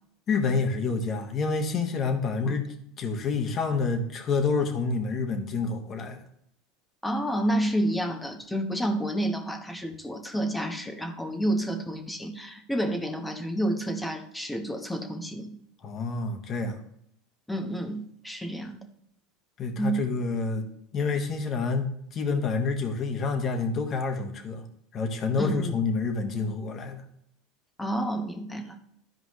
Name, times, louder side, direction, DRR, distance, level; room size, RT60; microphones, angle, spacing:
voice 1, 0.3-2.7 3.0-6.2 15.8-16.8 19.6-20.7 20.9-24.6 24.9-27.0, left 4 dB, 40° left, 5 dB, 1.6 m, -28 dB
voice 2, 7.0-15.5 17.5-18.8 19.8-20.0 25.4-25.7 27.8-28.8, right 1 dB, 5° left, 5 dB, 1.3 m, -29 dB
13.0 x 5.0 x 3.2 m, 0.73 s
supercardioid pair, 115°, 0 cm